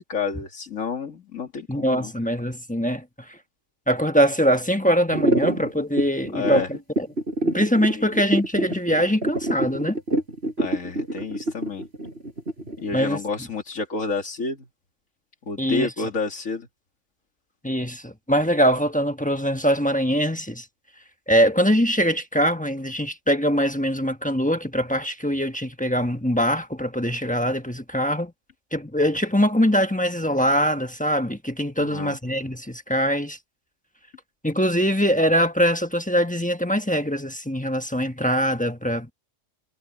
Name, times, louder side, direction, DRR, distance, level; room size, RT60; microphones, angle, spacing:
voice 1, 0.0-2.1 6.3-6.7 8.0-8.1 10.6-11.8 12.8-14.7 15.5-16.7 31.8-32.2, left 4 dB, 85° left, 2.5 m, -29 dB
voice 2, 1.7-3.0 3.3-3.4 3.9-7.1 7.4-10.0 12.9-13.2 15.6-15.9 17.6-20.6 21.3-28.3 28.7-33.4 34.4-39.1, equal, 5° left, 1.1 m, -22 dB
sound 1, 5.1-12.9, right 1 dB, 50° right, 6.6 m, -26 dB
omnidirectional pair, 1.3 m